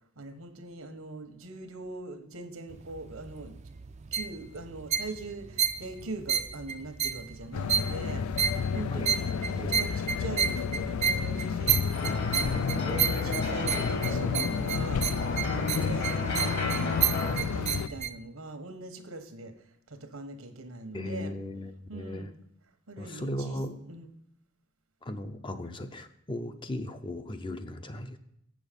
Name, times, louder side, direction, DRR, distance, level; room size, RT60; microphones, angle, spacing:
voice 1, 0.2-3.5 4.1-8.3 8.7-21.3 21.9-22.5 22.9-23.6 23.9-24.1, right 2 dB, 85° right, 7 dB, 1.2 m, -42 dB
sound 1, 2.7-18.1, right 8 dB, 30° right, 0.4 m, -32 dB
sound 2, 7.5-17.9, left 6 dB, 90° left, 0.3 m, -31 dB
sound 3, 11.9-17.4, left 1 dB, 50° left, 1.6 m, -35 dB
voice 2, 20.9-22.3 23.0-23.8 25.0-28.2, left 1 dB, 25° left, 9 dB, 0.5 m, -37 dB
7.9 x 6.3 x 5.2 m, 0.75 s
head